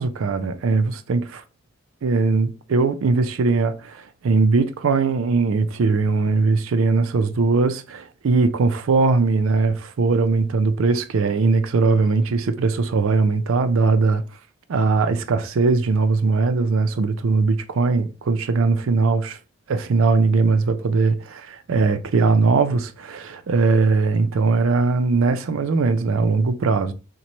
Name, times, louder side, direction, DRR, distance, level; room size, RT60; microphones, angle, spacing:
voice 1, 0.0-1.4 2.0-14.2 14.7-19.4 19.7-26.9, right 4 dB, 80° right, 0.4 m, -20 dB
3.0 x 2.2 x 3.9 m
head